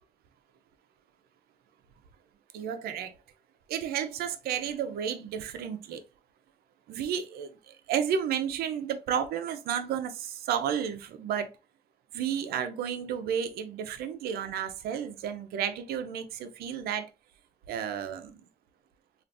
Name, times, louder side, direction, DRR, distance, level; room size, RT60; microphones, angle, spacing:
voice 1, 2.5-3.1 3.7-6.0 6.9-11.5 12.1-17.1 17.7-18.4, right 8 dB, 70° right, 0.5 m, -32 dB
3.3 x 2.5 x 2.5 m
cardioid pair, 120°, 17 cm